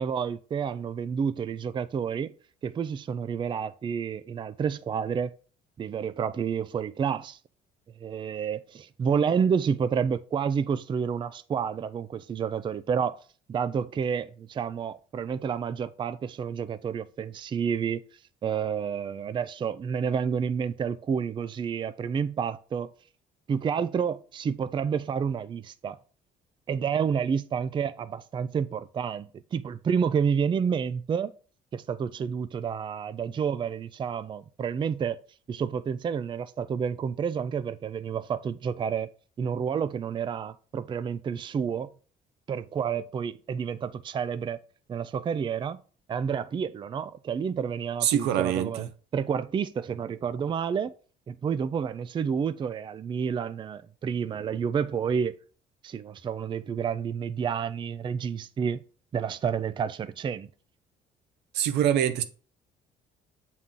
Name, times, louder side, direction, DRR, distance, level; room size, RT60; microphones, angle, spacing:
voice 1, 0.0-2.3 2.6-5.3 5.8-7.4 8.0-13.2 13.5-18.0 18.4-22.9 23.5-26.0 26.7-31.3 31.7-35.2 35.5-39.1 39.4-41.9 42.5-44.6 44.9-45.8 46.1-48.9 49.1-50.9 51.3-55.3 55.8-58.8 59.1-60.5, right 7 dB, 30° right, 0.4 m, -29 dB
voice 2, 48.0-48.9 61.5-62.2, right 10 dB, 90° right, 0.8 m, -24 dB
7.2 x 4.1 x 3.7 m
cardioid pair, 110°, 17 cm